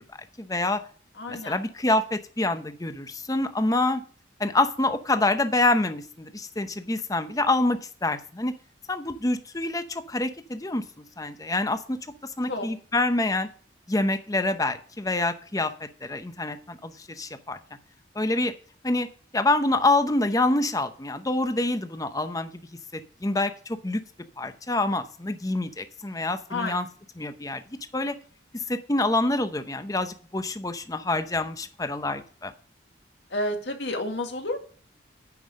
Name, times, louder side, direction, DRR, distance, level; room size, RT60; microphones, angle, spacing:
voice 1, 0.4-0.8 1.3-4.0 4.4-8.5 8.9-10.8 11.2-12.0 12.4-13.5 13.9-15.7 16.0-17.6 18.2-18.5 18.8-19.1 19.3-22.5 23.2-23.5 23.8-24.0 24.4-26.9 27.2-27.6 27.9-28.1 28.5-32.5, left 2 dB, 20° left, 9 dB, 0.7 m, -26 dB
voice 2, 1.2-1.6 12.5-12.7 26.5-26.7 33.3-34.6, left 1 dB, 70° left, 4 dB, 1.9 m, -30 dB
9.5 x 5.4 x 6.3 m, 0.42 s
head